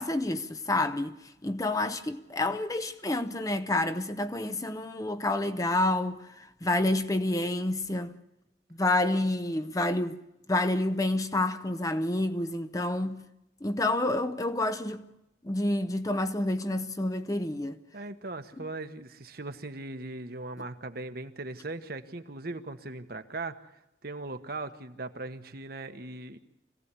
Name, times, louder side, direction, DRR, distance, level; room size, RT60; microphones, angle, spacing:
voice 1, 0.0-8.1 8.7-10.2 10.5-13.2 13.6-15.1 15.4-17.8 18.6-18.7, left 2 dB, 20° left, 0.8 m, -29 dB
voice 2, 17.9-23.6 24.0-26.4, right 2 dB, 55° right, 1.3 m, -39 dB
25.5 x 16.5 x 8.4 m
head